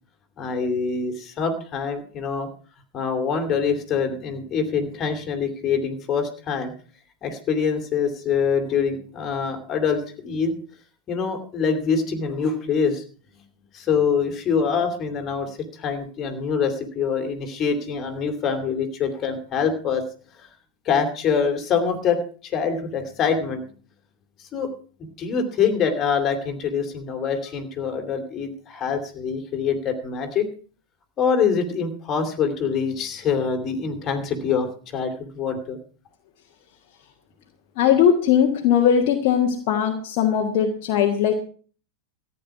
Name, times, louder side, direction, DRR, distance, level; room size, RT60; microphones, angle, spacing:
voice 1, 0.4-2.5 2.9-6.7 7.2-10.5 11.1-13.0 13.7-20.0 20.4-20.5 20.8-23.6 24.5-24.7 25.2-30.5 31.2-35.8, left 6 dB, 30° left, 6 dB, 2.8 m, -25 dB
voice 2, 37.8-41.3, left 8 dB, 45° left, 2 dB, 1.6 m, -19 dB
14.5 x 9.5 x 5.9 m, 0.42 s
figure-of-eight pair, 90°, 0 cm